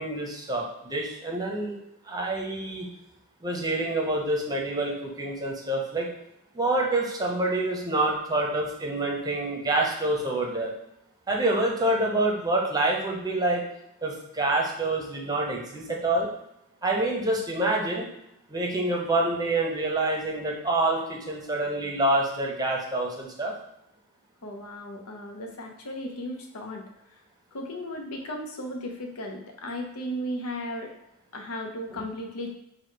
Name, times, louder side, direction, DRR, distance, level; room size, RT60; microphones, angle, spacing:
voice 1, 0.0-1.8 2.1-2.9 3.4-6.1 6.5-10.7 11.3-13.6 14.0-16.3 16.8-18.1 18.5-23.5 31.9-32.0, right 2 dB, 20° right, 0 dB, 0.7 m, -27 dB
voice 2, 24.4-26.8 27.5-30.9 31.3-32.5, equal, 85° left, 3 dB, 0.8 m, -35 dB
4.7 x 2.3 x 4.6 m, 0.85 s
head